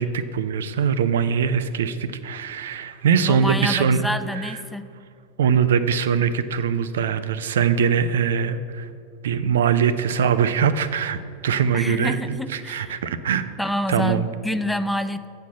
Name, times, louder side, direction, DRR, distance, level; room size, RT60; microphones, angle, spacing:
voice 1, 0.0-4.6 5.4-8.9 9.2-13.5 13.9-14.3, right 7 dB, 70° right, 12 dB, 0.4 m, -22 dB
voice 2, 3.2-4.9 11.7-13.0 13.6-15.3, left 1 dB, 5° left, 11 dB, 0.4 m, -27 dB
8.1 x 4.3 x 6.3 m, 2.4 s
hypercardioid pair, 90°, 0 cm